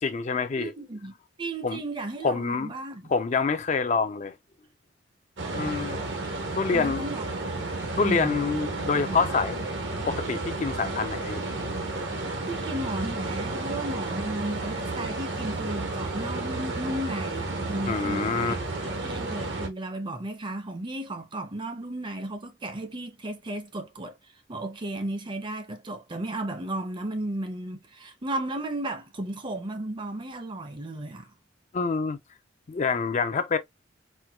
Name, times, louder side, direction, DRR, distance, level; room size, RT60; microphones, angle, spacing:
voice 1, 0.0-0.7 1.6-1.8 2.2-2.7 3.1-4.4 5.5-6.0 6.6-7.0 8.0-9.6 10.1-11.4 17.9-18.5 31.7-32.2 32.7-33.6, left 4 dB, 40° left, 0.4 m, -26 dB
voice 2, 0.6-3.1 6.7-7.4 8.0-8.4 12.5-18.6 18.8-24.2 24.5-31.3, right 1 dB, 25° right, 0.5 m, -34 dB
sound 1, 5.4-19.7, right 2 dB, 75° right, 1.0 m, -32 dB
4.3 x 2.1 x 2.2 m
head